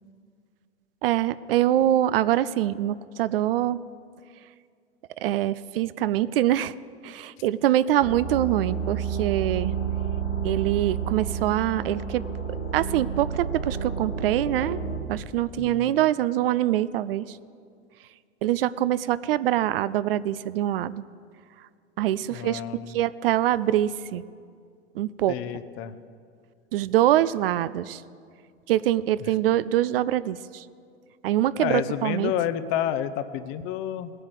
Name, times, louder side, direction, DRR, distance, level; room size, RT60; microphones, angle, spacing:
voice 1, 1.0-3.8 5.2-6.7 7.0-9.7 10.4-12.2 12.7-14.8 15.1-17.4 18.4-21.0 22.0-22.6 22.9-24.2 24.9-25.4 26.7-28.0 28.7-30.6 31.2-32.3, right 13 dB, 60° right, 17 dB, 0.5 m, -24 dB
sound 1, 8.0-15.0, right 6 dB, 85° left, 2.0 m, -30 dB
voice 2, 15.6-15.9 22.3-23.0 25.3-25.9 31.6-34.1, left 10 dB, 40° left, 13 dB, 0.8 m, -30 dB
19.5 x 7.8 x 6.4 m, 2.2 s
figure-of-eight pair, 90°, 33 cm